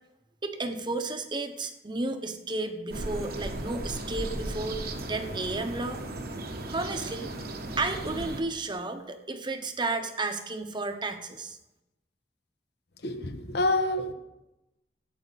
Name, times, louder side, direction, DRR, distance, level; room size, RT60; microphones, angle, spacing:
voice 1, 0.4-6.0 6.7-7.3 7.8-11.6, right 3 dB, 25° right, 7 dB, 1.0 m, -32 dB
sound 1, 2.9-8.4, right 1 dB, 55° right, 1.2 m, -36 dB
voice 2, 13.0-14.1, left 2 dB, 65° left, 7 dB, 1.2 m, -27 dB
16.5 x 8.6 x 4.1 m, 0.93 s
head